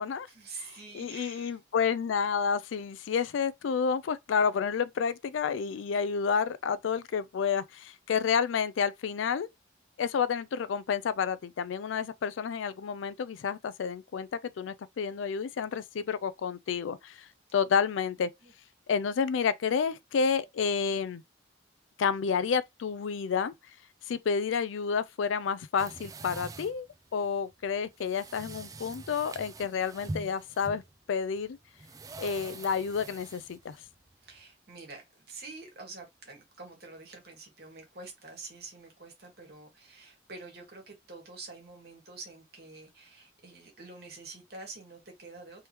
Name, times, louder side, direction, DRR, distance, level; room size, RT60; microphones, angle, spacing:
voice 1, 0.3-1.6 18.2-18.5 34.2-45.7, right 3 dB, 55° right, 1.5 m, -47 dB
voice 2, 0.9-9.5 10.0-14.3 14.6-18.3 18.9-21.2 22.0-23.5 24.1-30.8 31.1-31.6 32.2-33.8, left 6 dB, 85° left, 0.4 m, -30 dB
sound 1, 25.8-34.4, right 2 dB, 20° right, 0.3 m, -44 dB
3.4 x 3.0 x 2.9 m
head